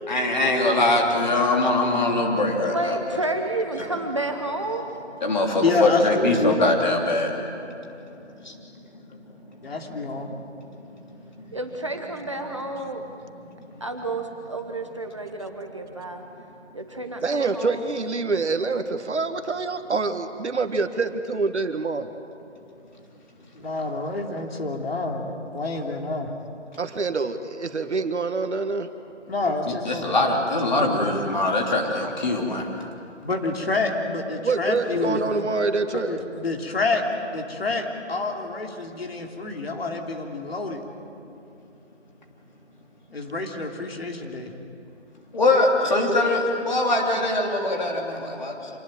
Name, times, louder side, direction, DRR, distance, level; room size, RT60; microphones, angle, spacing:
voice 1, 0.1-3.0 5.2-7.3 29.7-32.6 45.3-46.4 46.7-47.9 48.4-48.5, left 2 dB, 40° left, 1 dB, 3.3 m, -22 dB
voice 2, 2.7-4.8 11.5-13.0 13.8-16.2 16.7-17.8, right 2 dB, 25° right, 4 dB, 1.0 m, -30 dB
voice 3, 5.6-6.6 9.6-10.3 23.5-26.3 29.3-30.1 33.2-35.2 36.1-37.0 37.3-40.8 43.1-44.5, left 3 dB, 55° left, 2 dB, 3.0 m, -27 dB
voice 4, 17.2-22.1 26.8-28.9 30.8-31.0 34.4-36.2, right 3 dB, 70° right, 8 dB, 1.8 m, -26 dB
27.0 x 19.5 x 7.7 m, 2.8 s
figure-of-eight pair, 175°, 36 cm